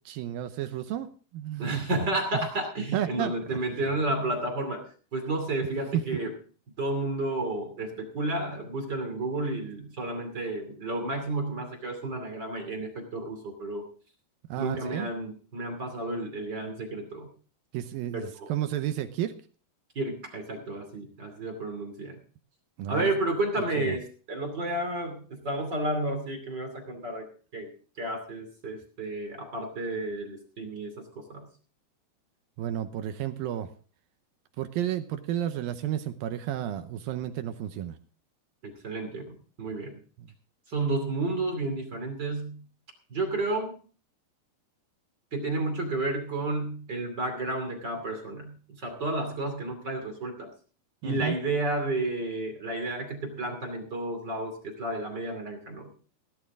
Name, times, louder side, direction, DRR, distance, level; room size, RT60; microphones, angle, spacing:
voice 1, 0.1-1.8 2.3-2.5 2.9-3.7 5.9-6.2 14.5-15.1 17.7-19.3 22.8-23.1 23.8-24.0 32.6-33.7 34.6-38.0 51.0-51.4, right 11 dB, 75° right, 9 dB, 2.3 m, -32 dB
voice 2, 1.6-6.3 6.8-13.9 14.6-17.3 18.4-18.5 19.9-22.2 22.9-27.3 27.5-27.7 28.0-31.5 38.6-39.9 40.7-42.6 43.1-43.8 45.3-50.5 51.0-55.9, right 2 dB, 30° right, 4 dB, 2.6 m, -31 dB
17.0 x 12.0 x 3.6 m, 0.39 s
omnidirectional pair, 4.8 m